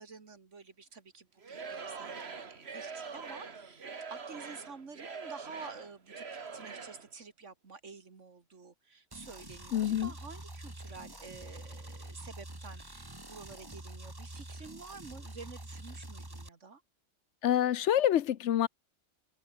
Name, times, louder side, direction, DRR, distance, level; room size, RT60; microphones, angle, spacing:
voice 1, 0.0-6.2 6.5-16.8, right 4 dB, 75° right, 2.5 m, -50 dB
Singing / Crowd, 1.4-7.1, right 5 dB, 60° right, 1.9 m, -44 dB
sound 1, 9.1-16.5, right 1 dB, 20° right, 2.4 m, -46 dB
voice 2, 9.7-10.1 17.4-18.7, left 11 dB, 75° left, 1.0 m, -27 dB
omnidirectional pair, 1.3 m